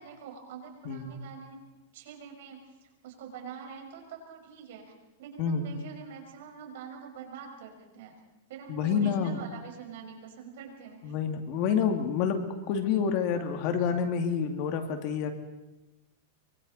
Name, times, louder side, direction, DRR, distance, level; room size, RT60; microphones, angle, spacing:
voice 1, 0.0-1.6 1.9-2.7 3.0-4.9 5.2-8.1 8.5-11.1, right 6 dB, 65° right, 2 dB, 5.3 m, -45 dB
voice 2, 5.4-5.7 8.7-9.4 11.0-12.4 12.7-15.3, left 7 dB, 40° left, 6 dB, 2.3 m, -28 dB
26.0 x 24.0 x 4.2 m, 1.1 s
supercardioid pair, 160°, 0 cm